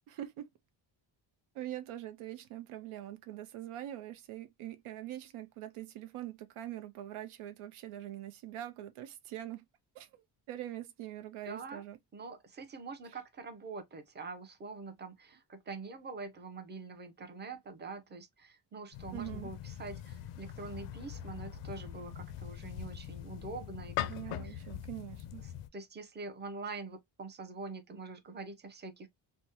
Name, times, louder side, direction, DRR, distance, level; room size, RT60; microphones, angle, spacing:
voice 1, 0.1-0.5 1.5-9.6 9.9-12.0 19.1-19.5 24.1-25.4, right 13 dB, 90° right, 0.6 m, -43 dB
voice 2, 11.4-11.8 12.1-24.6 25.4-29.1, right 4 dB, 20° right, 0.5 m, -45 dB
sound 1, 18.9-25.7, left 11 dB, 85° left, 0.5 m, -42 dB
3.3 x 2.1 x 2.8 m
wide cardioid pair, 170°, 49 cm